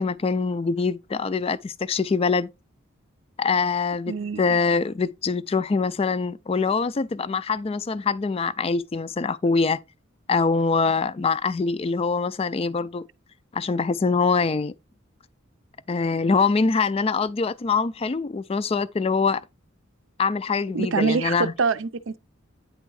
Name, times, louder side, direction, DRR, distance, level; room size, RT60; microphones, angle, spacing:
voice 1, 0.0-2.5 3.4-9.8 10.3-13.0 13.5-14.7 15.9-19.4 20.2-21.5, left 4 dB, 30° left, 0.3 m, -24 dB
voice 2, 4.1-4.6 20.7-22.2, right 4 dB, 70° right, 0.5 m, -25 dB
9.2 x 3.5 x 4.7 m
head